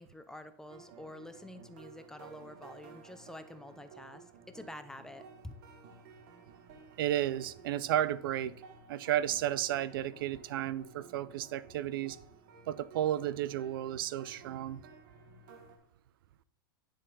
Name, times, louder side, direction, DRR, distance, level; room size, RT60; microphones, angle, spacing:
voice 1, 0.0-5.5, left 1 dB, 5° left, 9 dB, 0.6 m, -48 dB
sound 1, 0.7-15.8, right 4 dB, 65° right, 1.5 m, -55 dB
voice 2, 7.0-8.5 8.9-12.2 12.7-14.8, right 12 dB, 80° right, 18 dB, 0.4 m, -33 dB
10.0 x 3.8 x 4.0 m, 0.75 s
hypercardioid pair, 115°, 12 cm